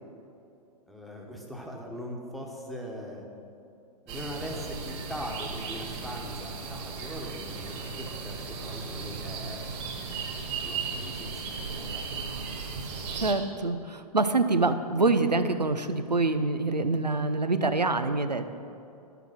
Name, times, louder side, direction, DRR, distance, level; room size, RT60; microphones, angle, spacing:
voice 1, 0.9-3.3 4.1-9.6 9.8-10.0 10.6-12.0, equal, ahead, -1 dB, 1.3 m, -40 dB
sound 1, 4.1-13.3, right 4 dB, 45° right, 1.9 m, -36 dB
voice 2, 13.1-18.6, right 3 dB, 90° right, 10 dB, 0.7 m, -26 dB
11.5 x 7.0 x 5.9 m, 2.6 s
figure-of-eight pair, 110°, 21 cm